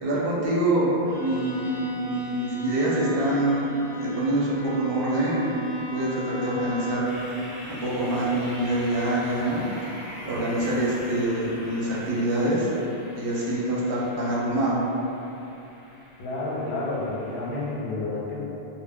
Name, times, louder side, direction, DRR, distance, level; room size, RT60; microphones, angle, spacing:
voice 1, 0.0-5.6 5.9-7.2 7.7-9.6 10.2-12.7 13.1-14.8, right 1 dB, 65° right, -6 dB, 0.8 m, -25 dB
Bowed string instrument, 1.0-7.3, right 2 dB, 40° right, 0.9 m, -37 dB
sound 1, 7.0-17.7, equal, 35° left, 0.6 m, -43 dB
voice 2, 16.2-18.4, left 2 dB, 80° left, -5 dB, 0.8 m, -30 dB
2.1 x 2.1 x 3.4 m, 2.9 s
omnidirectional pair, 1.1 m